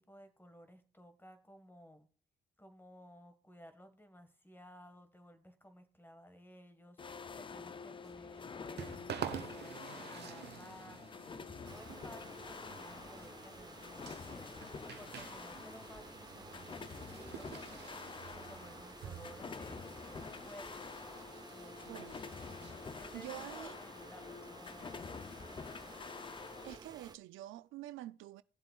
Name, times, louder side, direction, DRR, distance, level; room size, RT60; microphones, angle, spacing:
voice 1, 0.0-2.1 2.6-11.2 11.6-17.5 18.3-22.1 23.0-26.1, equal, 10° left, 1.5 m, -57 dB
sound 1, 7.0-26.8, left 5 dB, 25° left, 0.5 m, -48 dB
sound 2, 8.0-23.2, right 9 dB, 60° right, 1.0 m, -50 dB
sound 3, 11.6-27.2, right 4 dB, 20° right, 0.8 m, -54 dB
voice 2, 23.1-23.8 26.6-28.4, right 15 dB, 85° right, 0.4 m, -47 dB
18.0 x 7.5 x 2.4 m
cardioid pair, 90°, 20 cm